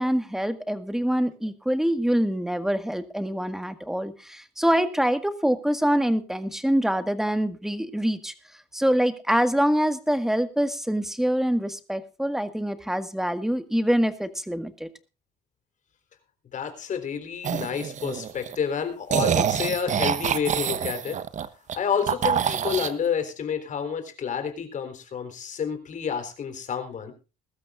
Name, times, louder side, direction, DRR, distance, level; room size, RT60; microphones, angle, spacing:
voice 1, 0.0-8.3 8.7-14.9, equal, ahead, 11 dB, 1.6 m, -25 dB
voice 2, 16.5-21.2 21.7-27.1, left 7 dB, 50° left, 8 dB, 4.0 m, -29 dB
sound 1, 17.4-18.6 19.1-21.8 22.1-22.9, right 8 dB, 45° right, 1.1 m, -26 dB
21.5 x 13.0 x 2.5 m, 0.31 s
cardioid pair, 110°, 17 cm